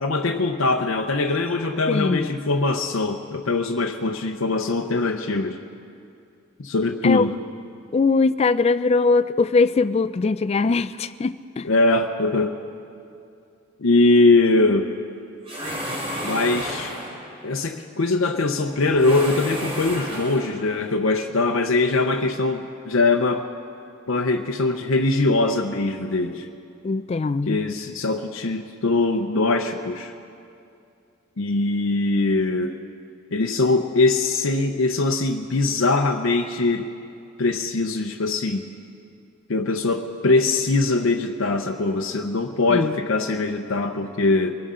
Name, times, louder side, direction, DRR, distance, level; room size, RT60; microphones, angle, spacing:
voice 1, 0.0-5.6 6.6-7.3 11.6-12.6 13.8-14.9 16.2-16.9 17.4-23.5 24.1-26.5 27.5-30.1 31.4-32.7 33.3-36.9 37.4-38.7 39.5-44.5, left 3 dB, 75° left, 3 dB, 0.7 m, -22 dB
voice 2, 1.9-2.3 7.0-7.2 7.9-11.7 26.8-27.7 42.7-43.0, left 4 dB, 30° left, 14 dB, 0.3 m, -21 dB
sound 1, 15.5-17.3 18.9-20.7, equal, 30° right, 2.7 m, -31 dB
24.0 x 16.0 x 3.8 m, 2.5 s
head